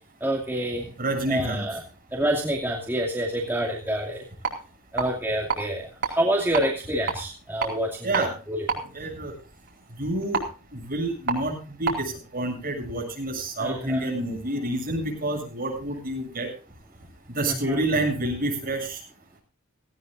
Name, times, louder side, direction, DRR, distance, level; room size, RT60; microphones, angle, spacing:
voice 1, 0.2-0.9 1.3-1.8 2.1-4.3 4.9-8.8 13.6-14.1 17.4-17.8, right 1 dB, 10° right, -2 dB, 2.4 m, -27 dB
voice 2, 1.0-1.6 8.0-8.3 8.9-9.3 10.0-10.4 10.7-16.5 17.3-19.0, right 1 dB, 45° right, 1 dB, 7.9 m, -28 dB
sound 1, 4.3-12.1, right 5 dB, 60° right, 4.3 m, -33 dB
18.5 x 17.0 x 2.6 m, 0.36 s
head